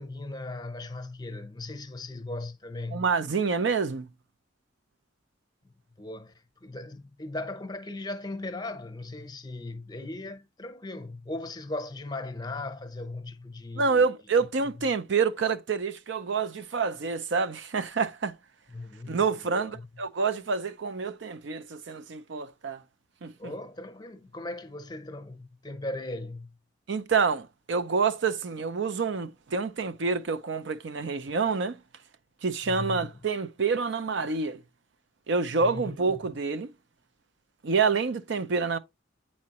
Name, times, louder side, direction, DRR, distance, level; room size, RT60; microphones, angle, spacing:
voice 1, 0.0-3.1 6.0-6.3 6.6-14.1 14.4-14.5 18.7-19.2 19.4-19.9 23.4-26.5 32.6-33.1 35.6-36.0, left 2 dB, 20° left, 0.8 m, -38 dB
voice 2, 2.9-4.1 13.8-18.4 19.1-22.8 23.2-23.5 26.9-31.8 32.4-34.6 35.3-36.7 37.6-38.8, right 5 dB, 65° right, 0.5 m, -27 dB
8.4 x 4.3 x 2.9 m
head